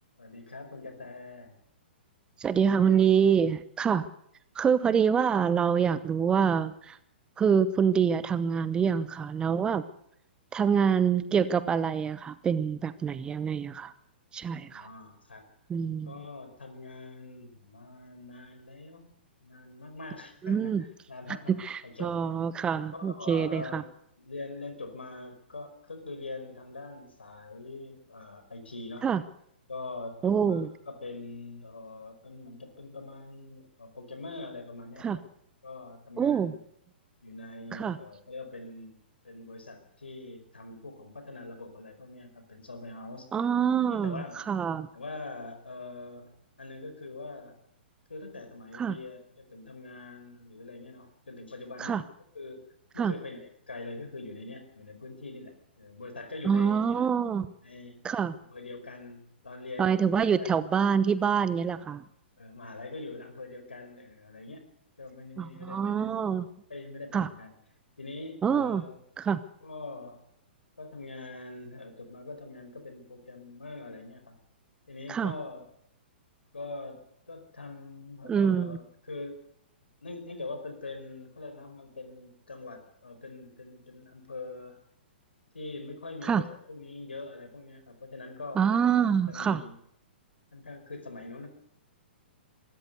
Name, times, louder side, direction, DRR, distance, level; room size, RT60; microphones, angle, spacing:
voice 1, 0.2-1.6 14.6-15.5 16.0-19.1 19.4-21.5 21.8-22.2 22.9-23.8 24.2-29.1 29.7-35.2 35.6-36.6 37.2-39.0 39.2-43.3 43.9-44.5 44.9-47.6 48.1-52.0 52.3-52.7 52.9-57.1 57.6-58.1 58.5-60.6 62.4-64.7 65.0-66.1 66.7-67.5 68.0-69.0 69.6-70.2 70.8-74.4 74.9-75.7 76.5-79.5 80.0-84.8 85.5-89.8 90.5-91.5, left 3 dB, 75° left, 8 dB, 5.0 m, -43 dB
voice 2, 2.4-4.1 4.5-7.0 7.4-9.8 10.5-13.9 14.3-14.9 15.7-16.1 20.4-20.8 21.6-23.8 29.0-29.2 30.2-30.7 35.0-35.2 36.2-36.5 37.7-38.0 43.3-44.9 48.7-49.0 51.8-52.0 53.0-53.1 56.4-57.5 58.0-58.3 59.8-62.0 65.4-66.5 67.1-67.3 68.4-68.8 69.2-69.4 75.1-75.3 78.3-78.8 86.2-86.4 88.6-89.6, right 7 dB, 15° right, 15 dB, 0.8 m, -26 dB
24.0 x 13.5 x 8.1 m, 0.75 s
figure-of-eight pair, 115°, 6 cm